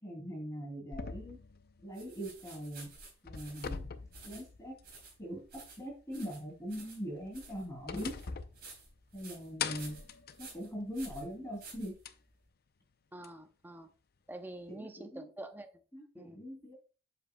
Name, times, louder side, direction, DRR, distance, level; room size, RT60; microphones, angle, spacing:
voice 1, 0.0-1.4 1.8-2.9 3.2-3.9 4.2-4.7 5.2-8.1 9.1-10.0 10.4-11.9 14.7-15.3 15.9-16.7, equal, 15° left, 2.7 m, -41 dB
sound 1, 0.9-2.7 3.0-5.1 5.4-5.5 7.1-9.2 9.6-11.3 12.1-12.2 13.2-13.3, left 6 dB, 50° left, 0.5 m, -43 dB
sound 2, 1.9-12.4, right 3 dB, 50° right, 3.7 m, -53 dB
voice 2, 13.1-13.9 14.3-15.8 16.1-16.4, right 1 dB, 10° right, 0.6 m, -46 dB
7.9 x 7.1 x 2.2 m
head